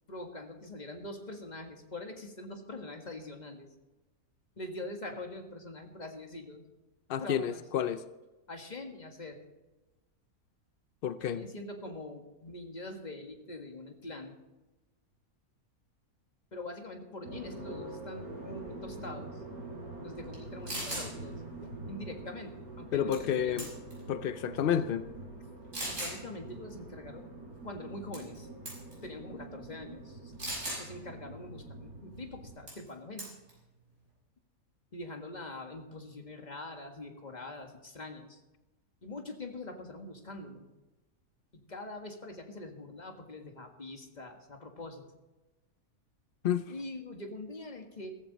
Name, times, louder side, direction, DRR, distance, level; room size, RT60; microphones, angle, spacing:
voice 1, 0.1-3.7 4.6-6.6 7.2-7.6 8.5-9.4 11.2-14.4 16.5-19.4 20.0-23.7 25.9-27.3 27.6-28.5 29.0-30.3 30.8-33.3 34.9-38.4 39.0-40.7 41.7-45.0 46.7-48.1, left 2 dB, 30° left, 1.7 m, -44 dB
voice 2, 7.1-8.0 11.0-11.4 22.9-23.7 24.1-25.1 46.4-46.7, left 9 dB, 70° left, 0.5 m, -30 dB
sound 1, 17.2-32.6, right 2 dB, 80° right, 5.2 m, -45 dB
sound 2, 20.3-20.4 20.7-21.1 23.1-23.3 23.6-24.0 24.7-24.8 25.7-26.2 28.1-28.4 28.7-28.9 30.4-30.8 32.7-32.9 33.2-33.5, right 1 dB, 55° right, 6.3 m, -37 dB
15.0 x 14.5 x 4.1 m
omnidirectional pair, 1.6 m